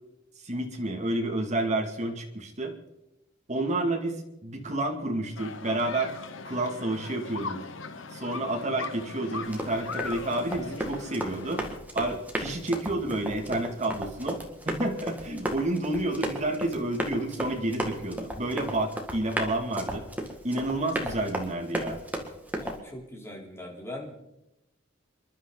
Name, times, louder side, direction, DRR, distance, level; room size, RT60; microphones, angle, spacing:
voice 1, 0.4-2.7 3.5-4.2 4.4-6.2 6.4-7.6 8.1-11.6 11.9-20.0 20.4-22.0, right 1 dB, 40° right, 3 dB, 2.4 m, -30 dB
sound 1, 5.4-11.8, left 4 dB, 80° left, 1.2 m, -39 dB
Run, 9.4-22.8, right 1 dB, 10° right, 2.1 m, -35 dB
voice 2, 22.5-24.2, left 1 dB, 15° left, -2 dB, 3.8 m, -41 dB
28.0 x 11.5 x 4.1 m, 0.90 s
head